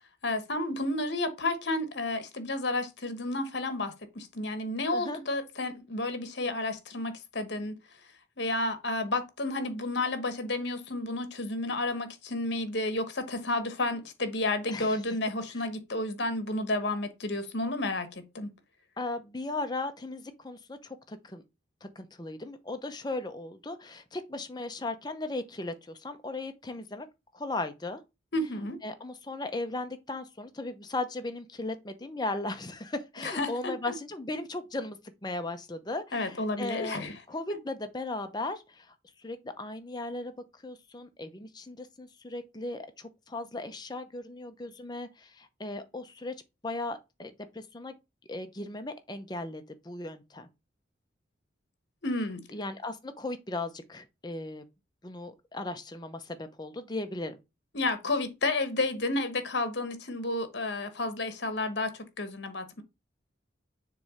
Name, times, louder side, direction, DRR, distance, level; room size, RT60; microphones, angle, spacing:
voice 1, 0.2-7.7 8.4-18.5 28.3-28.8 33.2-33.9 36.1-37.2 52.0-52.4 57.7-62.8, left 2 dB, 60° left, 1.2 m, -31 dB
voice 2, 14.7-15.0 15.5-15.7 19.0-21.4 21.8-27.1 27.3-28.0 28.8-40.3 40.6-46.3 46.6-47.9 48.3-50.5 52.5-54.6 55.0-57.4, left 2 dB, 20° left, 0.7 m, -37 dB
6.8 x 3.2 x 4.9 m
head